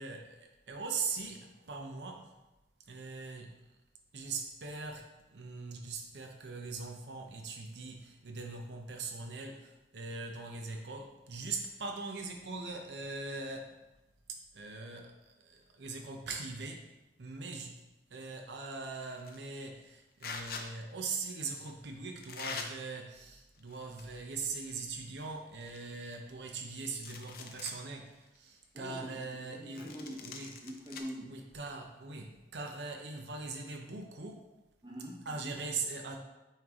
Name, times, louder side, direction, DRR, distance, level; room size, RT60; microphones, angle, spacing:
voice 1, 0.0-2.3 2.9-3.6 4.1-13.7 14.3-16.9 17.2-17.8 18.1-29.9 30.2-30.6 31.2-34.5 35.2-36.2, right 4 dB, 80° right, 2 dB, 0.7 m, -41 dB
sound 1, 19.2-19.5 20.2-20.7 21.6-21.7 22.2-22.7 23.6-24.2 24.5-24.6 25.2-25.3 25.6-26.6 26.9-27.8 28.3-28.4 29.8-31.0, left 5 dB, 55° left, 0.6 m, -43 dB
voice 2, 28.7-31.4 34.8-35.6, equal, 25° right, -3 dB, 1.1 m, -45 dB
8.8 x 3.2 x 3.6 m, 0.99 s
head